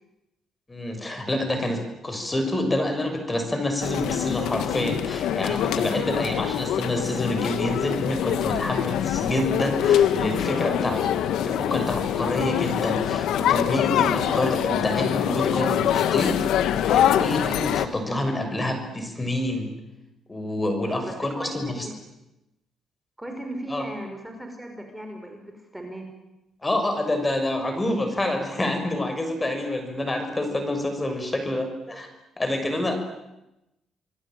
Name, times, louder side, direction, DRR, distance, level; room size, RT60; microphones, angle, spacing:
voice 1, 0.7-11.1 11.4-16.5 16.8-19.8 20.3-21.9 23.7-23.8 26.6-32.1 32.4-33.0, left 1 dB, 20° left, 6 dB, 6.4 m, -27 dB
sound 1, 3.8-17.9, left 10 dB, 85° left, 1.7 m, -24 dB
voice 2, 21.0-22.0 23.2-26.1, right 1 dB, 5° right, 4 dB, 5.2 m, -37 dB
27.5 x 21.0 x 9.2 m, 0.94 s
cardioid pair, 90°, 0 cm